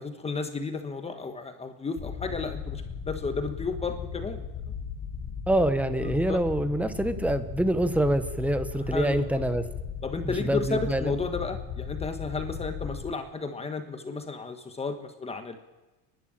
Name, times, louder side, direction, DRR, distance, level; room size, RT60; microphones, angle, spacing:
voice 1, 0.0-4.5 6.0-6.4 8.9-9.4 10.0-15.6, left 4 dB, 15° left, 7 dB, 1.4 m, -33 dB
sound 1, 2.0-13.1, left 7 dB, 35° left, 1.8 m, -37 dB
voice 2, 5.5-9.6 10.2-11.1, right 1 dB, 5° right, 11 dB, 1.1 m, -26 dB
29.5 x 11.5 x 9.0 m, 1.1 s
cardioid pair, 155°, 41 cm